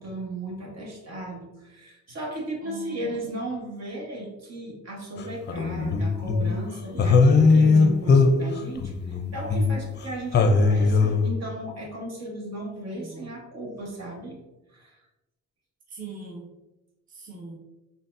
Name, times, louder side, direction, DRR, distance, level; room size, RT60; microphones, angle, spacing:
voice 1, 0.0-14.4 14.7-15.0, right 1 dB, 60° right, -1 dB, 1.3 m, -35 dB
voice 2, 2.6-3.2 12.9-13.3 15.9-16.5 17.1-17.6, right 4 dB, 30° right, -1 dB, 0.7 m, -41 dB
sound 1, 5.2-6.6 7.0-10.1 10.3-11.3, left 4 dB, 35° left, 0.5 m, -20 dB
4.2 x 3.6 x 2.6 m, 0.99 s
cardioid pair, 90°, 30 cm